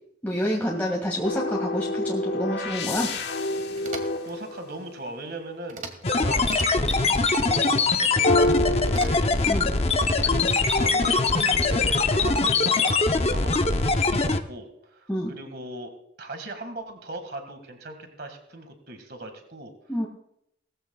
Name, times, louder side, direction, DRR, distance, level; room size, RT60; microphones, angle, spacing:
voice 1, 0.2-3.1 9.4-9.7 15.1-15.3 19.9-20.1, equal, 10° left, -4 dB, 2.0 m, -28 dB
sound 1, 1.2-5.4 8.2-9.7 10.3-12.0, left 2 dB, 75° left, 1.4 m, -29 dB
sound 2, 3.8-4.3 5.7-6.1 6.4-7.0 8.9-9.5, right 4 dB, 45° right, 1.8 m, -39 dB
voice 2, 3.9-5.8 6.1-6.5 6.9-9.3 10.2-10.4 10.7-14.2 14.5-15.9 16.2-19.7, right 1 dB, 60° right, 6 dB, 2.0 m, -39 dB
sound 3, 6.0-14.4, left 3 dB, 35° left, 0.8 m, -22 dB
19.0 x 14.5 x 2.4 m, 0.74 s
head